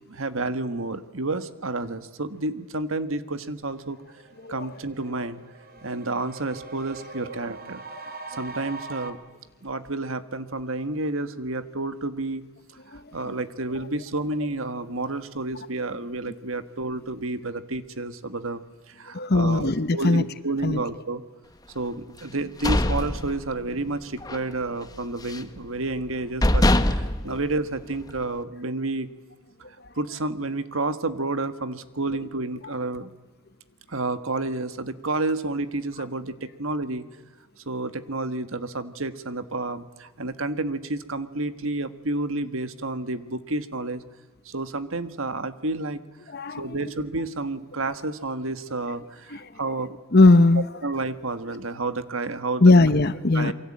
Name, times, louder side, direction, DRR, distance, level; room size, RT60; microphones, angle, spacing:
voice 1, 0.1-4.0 4.5-5.4 5.8-7.8 8.4-9.2 9.6-12.4 12.9-18.6 18.9-21.2 21.7-29.1 30.0-33.1 33.9-37.0 37.6-44.0 44.4-46.0 46.6-50.0 50.8-52.6 53.3-53.5, right 2 dB, 75° right, 11 dB, 1.6 m, -30 dB
sound 1, 3.8-9.1, right 3 dB, 45° right, 2.7 m, -42 dB
voice 2, 4.4-4.8 7.2-7.5 12.9-13.0 19.1-20.2 20.6-20.8 27.2-27.3 29.8-29.9 46.3-46.9 49.3-49.5 50.1-50.7 52.6-53.5, left 2 dB, 50° left, 12 dB, 0.9 m, -19 dB
sound 2, 22.3-23.9 24.2-24.5 24.8-25.6 26.0-26.1 26.4-28.2, left 1 dB, 20° left, 1.1 m, -23 dB
28.0 x 23.5 x 8.8 m, 1.2 s
head